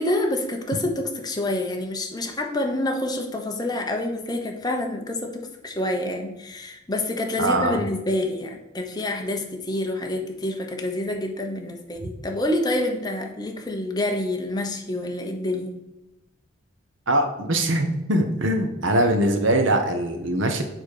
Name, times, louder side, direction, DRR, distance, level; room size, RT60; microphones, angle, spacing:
voice 1, 0.0-15.8, left 1 dB, 20° left, 3 dB, 1.0 m, -27 dB
voice 2, 7.4-7.8 17.1-20.6, right 1 dB, 85° right, 5 dB, 1.1 m, -22 dB
7.0 x 4.0 x 6.6 m, 0.93 s
head